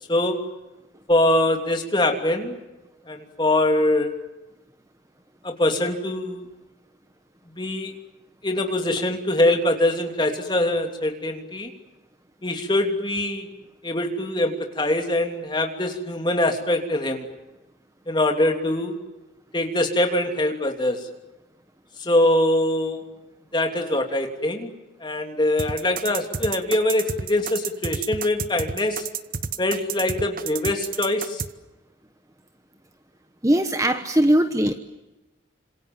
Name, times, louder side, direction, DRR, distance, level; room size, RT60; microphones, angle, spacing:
voice 1, 1.1-2.6 3.1-4.1 5.4-6.4 7.6-7.9 8.4-11.7 12.4-13.5 13.8-17.3 18.1-19.0 19.5-21.0 22.0-23.0 23.5-24.7 25.0-29.1 29.6-31.4, left 1 dB, 25° left, 4 dB, 3.1 m, -23 dB
sound 1, 25.6-31.5, right 6 dB, 45° right, 1.0 m, -30 dB
voice 2, 33.4-34.7, right 1 dB, 15° right, 8 dB, 1.1 m, -20 dB
28.5 x 26.5 x 7.4 m, 1.0 s
head